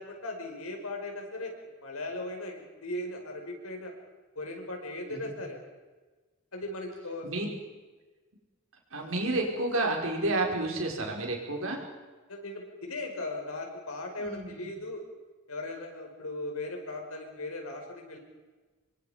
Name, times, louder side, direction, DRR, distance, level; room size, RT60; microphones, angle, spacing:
voice 1, 0.0-3.9 4.4-5.6 6.5-7.3 12.3-15.0 15.5-18.2, left 2 dB, 85° left, 2 dB, 5.4 m, -38 dB
voice 2, 8.9-11.8 14.2-14.7, right 2 dB, 75° right, 1 dB, 5.2 m, -30 dB
27.0 x 24.0 x 5.2 m, 1.3 s
head